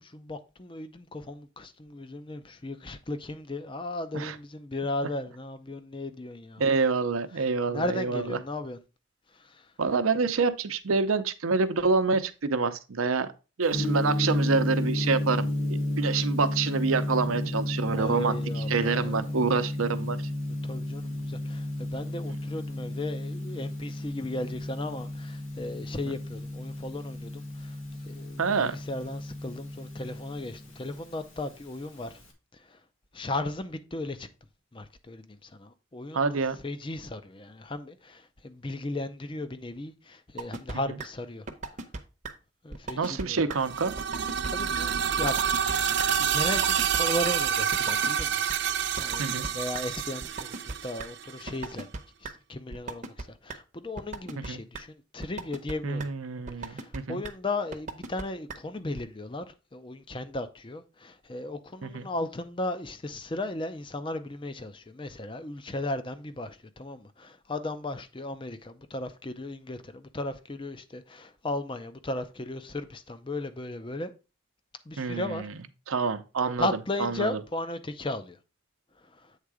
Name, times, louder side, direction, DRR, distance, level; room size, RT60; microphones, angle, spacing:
voice 1, 0.0-6.6 7.7-8.8 9.4-9.6 17.9-19.2 20.6-27.8 28.1-32.2 32.7-32.8 33.1-34.3 34.7-36.2 36.6-41.5 42.6-43.4 44.5-45.4 46.2-50.5 50.8-51.9 52.2-56.1 56.6-74.1 74.9-75.4 76.6-78.4 79.2-79.3, left 2 dB, 25° left, 0.5 m, -36 dB
voice 2, 6.6-8.4 9.8-13.3 13.6-15.5 16.0-20.2 28.4-28.8 36.1-36.6 43.0-43.9 49.2-49.5 54.4-54.6 55.8-57.2 61.8-62.1 75.0-75.5 75.9-76.7 77.0-77.4, right 4 dB, 85° right, 0.7 m, -27 dB
Gong, 13.7-32.3, left 1 dB, 80° left, 1.8 m, -32 dB
sound 1, 40.4-40.7 41.0-41.1 41.5-42.0 42.2-42.3 42.7-43.2 43.5-43.6 44.0-44.5 44.7-44.8 45.2-45.7 46.0-46.1 46.5-47.0 47.2-47.3 47.7-48.2 48.5-48.6 49.0-49.8 50.2-51.1 51.5-52.0 52.2-52.3 52.7-53.2 53.5-53.6 54.0-54.5 54.7-54.8 55.2-55.7 56.0-56.1 56.5-57.0 57.2-57.3 57.7-58.2 58.5-58.6 59.0-59.1, right 3 dB, 35° right, 0.8 m, -36 dB
sound 2, 43.6-51.4, right 8 dB, 55° right, 0.4 m, -28 dB
8.2 x 3.7 x 4.8 m
head